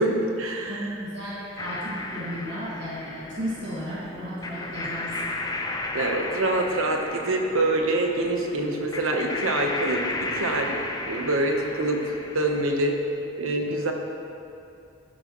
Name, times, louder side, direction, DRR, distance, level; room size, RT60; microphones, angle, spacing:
voice 1, 0.0-0.9 5.9-10.8 11.1-12.0 12.3-13.0 13.4-13.9, right 2 dB, 90° right, 2 dB, 1.1 m, -25 dB
voice 2, 0.7-5.3 13.6-13.7, equal, 55° right, -8 dB, 2.0 m, -34 dB
sound 1, 1.6-12.8, left 2 dB, 20° left, 0.5 m, -34 dB
12.0 x 10.5 x 3.1 m, 2.5 s
head